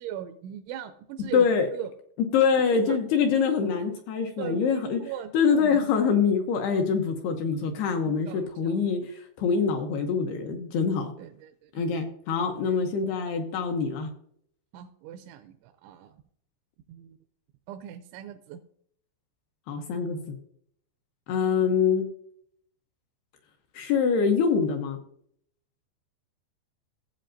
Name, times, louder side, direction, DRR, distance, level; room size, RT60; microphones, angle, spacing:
voice 1, 0.0-1.5 1.7-1.9 2.9-3.0 4.4-5.9 8.0-8.9 11.2-11.7 12.4-12.8 14.7-16.1 16.9-17.2 17.7-18.6, right 10 dB, 85° right, 7 dB, 2.9 m, -39 dB
voice 2, 1.3-1.7 2.3-5.0 5.3-11.1 11.7-14.1 19.7-20.4 21.3-22.1 23.7-25.0, left 6 dB, 75° left, 4 dB, 2.4 m, -25 dB
15.5 x 7.8 x 2.6 m, 0.66 s
omnidirectional pair, 5.4 m